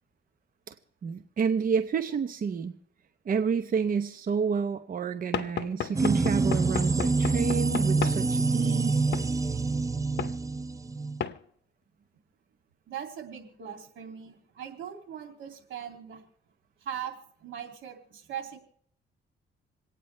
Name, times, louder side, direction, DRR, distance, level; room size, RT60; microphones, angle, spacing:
voice 1, 1.0-2.7 3.2-9.1, right 6 dB, 45° right, 8 dB, 0.8 m, -29 dB
Knock / Wood, 5.3-8.2 9.1-9.3 10.2-10.4 11.2-11.4, left 9 dB, 60° left, 0.8 m, -33 dB
sound 1, 6.0-11.2, right 3 dB, 15° right, 0.5 m, -26 dB
voice 2, 12.9-16.2 16.8-18.6, right 9 dB, 80° right, 4 dB, 2.6 m, -40 dB
27.5 x 9.3 x 3.2 m, 0.66 s
cardioid pair, 90°, 20 cm